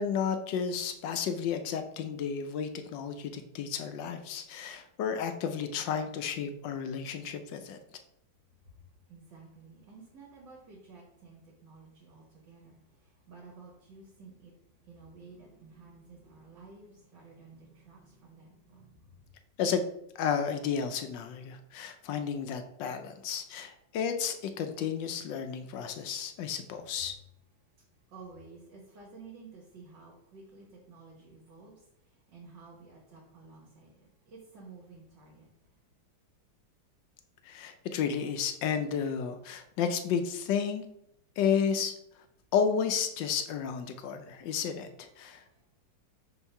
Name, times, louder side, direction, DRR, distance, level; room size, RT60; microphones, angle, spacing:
voice 1, 0.0-7.8 19.6-19.9 20.1-27.1 37.4-40.8 41.4-41.9 42.5-45.4, left 7 dB, 80° left, 7 dB, 1.3 m, -32 dB
voice 2, 9.1-14.5 14.9-19.2 28.1-35.5 45.3-45.6, right 4 dB, 70° right, -4 dB, 2.0 m, -52 dB
4.5 x 3.8 x 5.5 m, 0.77 s
omnidirectional pair, 2.0 m